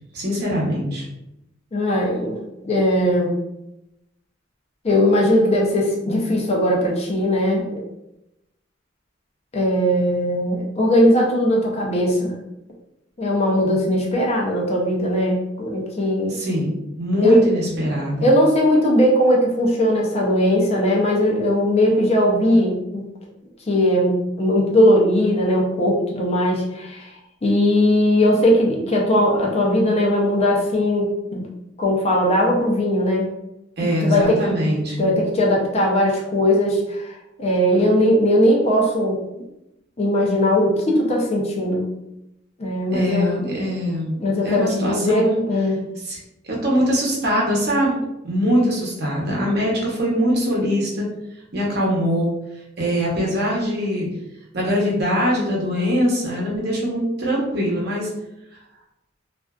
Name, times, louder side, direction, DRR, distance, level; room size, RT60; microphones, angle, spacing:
voice 1, 0.1-1.0 16.3-18.3 33.8-35.1 42.9-44.2 44.4-45.4 46.0-46.2 46.4-48.0 48.2-51.1 51.5-52.3 52.8-54.1 54.5-58.1, equal, 60° right, -4 dB, 0.8 m, -22 dB
voice 2, 1.7-2.4 2.6-3.3 4.8-7.8 9.5-12.4 13.2-16.4 17.2-17.5 18.2-23.1 23.7-27.1 27.4-31.5 31.8-33.3 34.0-34.5 35.0-39.2 40.0-41.9 42.6-43.3 44.2-45.8, left 1 dB, 35° left, -2 dB, 0.5 m, -19 dB
2.4 x 2.3 x 2.3 m, 0.89 s
head